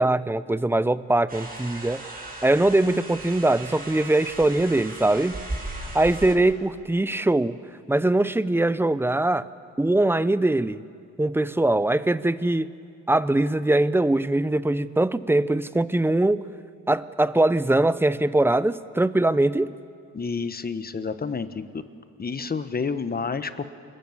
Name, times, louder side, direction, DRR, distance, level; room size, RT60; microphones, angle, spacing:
voice 1, 0.0-2.0 2.4-5.4 5.9-7.6 7.9-9.5 9.8-10.8 11.2-12.7 13.1-16.4 16.9-19.7, right 2 dB, 10° right, 15 dB, 0.7 m, -22 dB
sound 1, 1.3-6.3, right 2 dB, 30° right, 7.5 m, -37 dB
voice 2, 20.1-21.8 22.2-23.6, left 5 dB, 30° left, 11 dB, 1.3 m, -29 dB
27.0 x 21.0 x 7.4 m, 2.2 s
cardioid pair, 90°, 30 cm